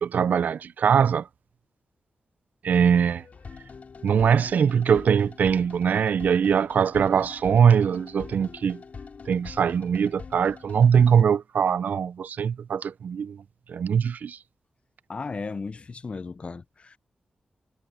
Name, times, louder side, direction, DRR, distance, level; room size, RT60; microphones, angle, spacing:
voice 1, 0.0-1.3 2.6-3.2 4.0-8.8 9.3-13.4 13.7-14.4, right 7 dB, 80° right, 0.4 m, -22 dB
sound 1, 2.9-11.2, left 5 dB, 60° left, 4.6 m, -44 dB
voice 2, 15.1-17.0, left 4 dB, 45° left, 0.5 m, -35 dB
wide cardioid pair, 85°, 3 cm